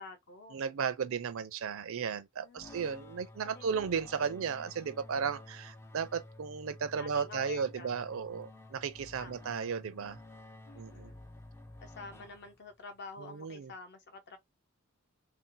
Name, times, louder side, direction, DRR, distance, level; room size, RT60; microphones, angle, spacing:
voice 1, 0.0-0.6 2.4-3.2 3.4-4.0 6.9-7.9 9.2-9.5 10.7-11.3 11.8-14.4, left 3 dB, 50° left, 0.8 m, -49 dB
voice 2, 0.5-10.2 10.8-11.1 13.2-13.7, right 6 dB, 65° right, 0.5 m, -35 dB
sound 1, 2.6-12.8, left 2 dB, 10° left, 0.4 m, -52 dB
2.6 x 2.1 x 3.8 m
head